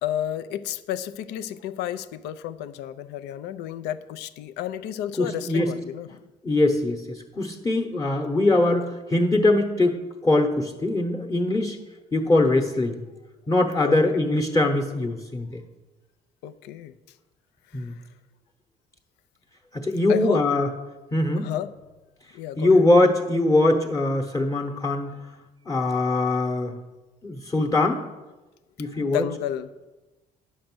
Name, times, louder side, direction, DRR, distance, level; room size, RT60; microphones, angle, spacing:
voice 1, 0.0-6.2 13.8-14.0 16.4-16.9 17.7-18.1 20.1-20.4 21.4-21.7 22.3-22.9 28.8-29.9, left 11 dB, 85° left, 12 dB, 0.5 m, -32 dB
voice 2, 5.2-5.7 6.4-11.8 12.1-13.0 13.5-15.6 17.7-17.9 19.7-20.7 21.1-21.5 22.6-25.1 25.7-26.7 27.2-28.0 28.8-29.2, left 2 dB, 20° left, 2 dB, 0.9 m, -22 dB
9.4 x 6.4 x 6.1 m, 1.1 s
cardioid pair, 110°, 17 cm